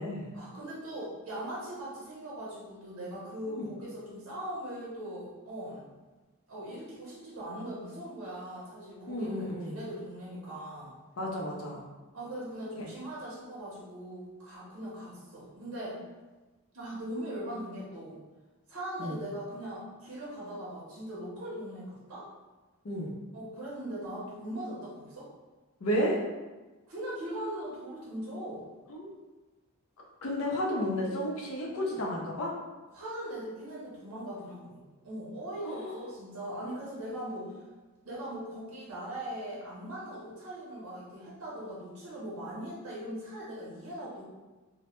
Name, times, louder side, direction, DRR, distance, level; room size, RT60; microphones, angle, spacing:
voice 1, 0.3-5.8 6.5-10.9 12.1-16.0 16.7-18.2 18.7-22.2 23.3-25.3 26.9-28.6 32.9-37.5 38.0-44.2, right 1 dB, 75° right, -7 dB, 0.7 m, -40 dB
voice 2, 9.1-9.8 11.2-11.8 12.8-12.9 19.0-19.2 22.8-23.1 25.8-26.2 28.9-29.1 30.2-32.5 35.6-36.1, equal, 80° left, -2 dB, 0.5 m, -32 dB
2.1 x 2.0 x 2.9 m, 1.2 s
head